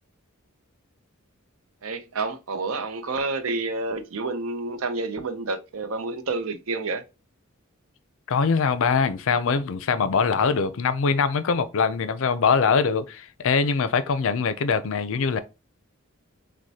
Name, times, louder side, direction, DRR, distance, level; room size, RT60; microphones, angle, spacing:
voice 1, 1.8-7.0, right 3 dB, 75° right, 0.6 m, -29 dB
voice 2, 8.3-15.4, left 5 dB, 65° left, 0.5 m, -23 dB
6.1 x 2.1 x 2.8 m
head